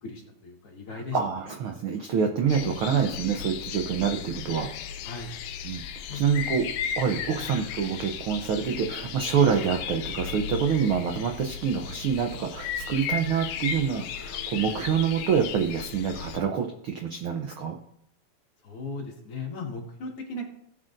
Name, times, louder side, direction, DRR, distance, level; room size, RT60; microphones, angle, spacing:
voice 1, 0.0-1.2 5.0-5.3 6.1-6.4 18.6-20.4, left 3 dB, 55° left, 0 dB, 2.5 m, -37 dB
voice 2, 0.9-4.7 5.6-5.8 6.1-6.7 7.0-17.8, right 7 dB, 75° right, 4 dB, 1.2 m, -26 dB
sound 1, 2.5-16.4, left 8 dB, 85° left, 2.1 m, -35 dB
17.5 x 7.5 x 2.6 m, 0.71 s
omnidirectional pair, 3.3 m